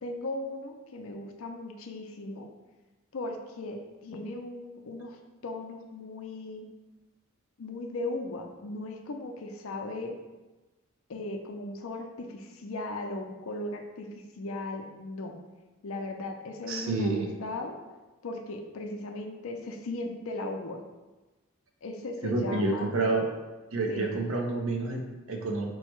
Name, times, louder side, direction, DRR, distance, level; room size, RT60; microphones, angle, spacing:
voice 1, 0.0-2.5 3.1-5.2 5.4-6.7 7.6-10.2 11.1-14.1 14.4-15.4 15.8-17.7 18.2-20.8 21.8-22.9 23.9-24.2, left 2 dB, 75° left, 4 dB, 0.5 m, -37 dB
voice 2, 16.7-17.3 22.2-23.3 23.7-25.7, right 2 dB, 75° right, 2 dB, 0.7 m, -29 dB
4.6 x 2.2 x 4.4 m, 1.2 s
head